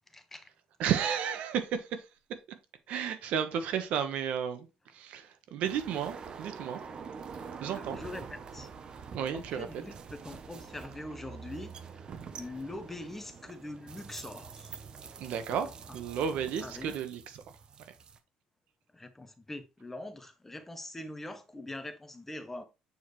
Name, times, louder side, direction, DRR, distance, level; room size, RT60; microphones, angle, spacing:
voice 1, 0.1-0.5 7.7-8.7 9.2-12.0 12.3-14.8 15.5-15.6 15.9-16.0 16.6-17.0 18.9-22.6, left 1 dB, 10° left, 0.9 m, -43 dB
voice 2, 0.8-2.0 2.9-4.7 4.9-6.8 7.6-8.0 9.1-9.7 15.2-15.7 15.9-17.4, right 8 dB, 70° right, 1.1 m, -32 dB
sound 1, 5.6-18.2, right 6 dB, 35° right, 0.8 m, -46 dB
8.3 x 4.5 x 3.2 m
cardioid pair, 120°, 2 cm